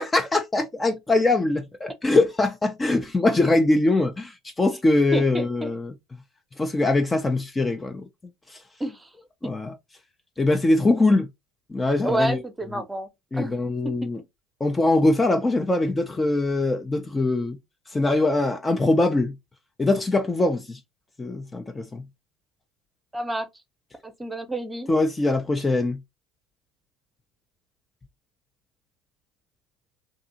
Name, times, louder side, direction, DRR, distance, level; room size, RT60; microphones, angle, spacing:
voice 1, 0.0-5.9 6.6-8.1 8.5-8.6 9.4-9.7 10.4-11.3 11.7-12.4 13.3-14.2 14.6-17.6 17.9-19.3 19.8-20.8 21.2-22.0 24.9-26.0, left 2 dB, 20° left, 0.5 m, -22 dB
voice 2, 5.1-5.7 8.8-9.1 9.4-9.5 12.0-13.1 13.3-13.5 23.1-23.5 24.0-24.9, right 1 dB, 15° right, 0.8 m, -29 dB
2.6 x 2.5 x 2.6 m
hypercardioid pair, 75°, 0 cm